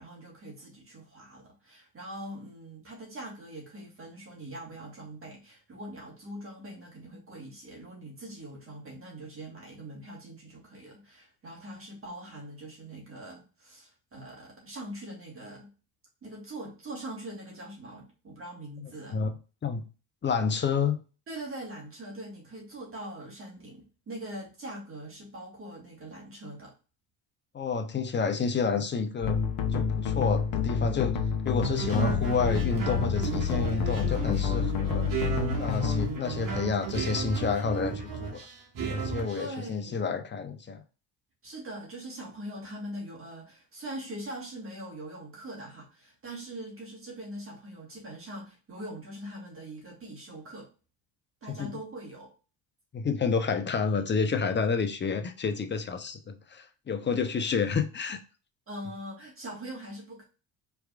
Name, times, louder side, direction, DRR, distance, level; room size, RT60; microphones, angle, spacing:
voice 1, 0.0-15.7 16.2-19.2 21.3-26.7 39.4-40.0 41.4-50.7 51.4-52.3 58.7-60.2, right 1 dB, 35° right, 1.9 m, -42 dB
voice 2, 20.2-21.0 27.5-29.4 29.7-31.2 31.4-35.1 35.6-38.4 38.9-40.8 51.6-51.7 52.9-58.2, left 5 dB, 30° left, 0.8 m, -29 dB
sound 1, 29.2-36.1, left 7 dB, 60° left, 0.9 m, -29 dB
sound 2, 31.6-39.4, right 5 dB, 60° right, 1.6 m, -34 dB
4.5 x 3.5 x 2.4 m
supercardioid pair, 90°, 36 cm